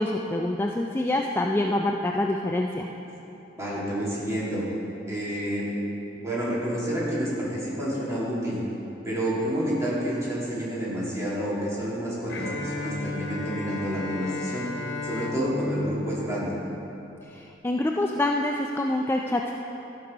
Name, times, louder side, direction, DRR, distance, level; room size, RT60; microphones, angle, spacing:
voice 1, 0.0-2.9 17.3-19.5, left 1 dB, 15° left, 1 dB, 0.3 m, -26 dB
voice 2, 3.5-4.6 5.1-5.7 6.2-8.6 9.0-14.6 15.0-16.5, equal, 15° right, -8 dB, 2.6 m, -29 dB
Bowed string instrument, 12.3-17.2, left 2 dB, 85° left, 1.3 m, -34 dB
13.5 x 6.2 x 5.0 m, 3.0 s
head